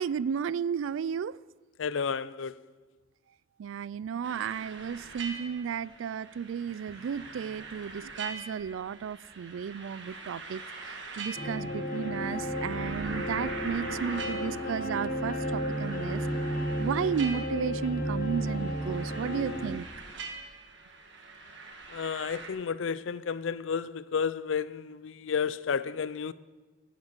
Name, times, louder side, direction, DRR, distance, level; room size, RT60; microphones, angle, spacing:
voice 1, 0.0-1.4 3.6-10.6 10.9-16.2 16.8-19.9, right 7 dB, 85° right, 0.3 m, -33 dB
voice 2, 1.8-2.6 21.9-26.3, left 6 dB, 75° left, 0.5 m, -32 dB
sound 1, 4.2-22.5, right 3 dB, 65° right, 1.7 m, -43 dB
sound 2, 11.3-19.7, equal, 45° left, 1.6 m, -33 dB
16.0 x 8.1 x 6.6 m
head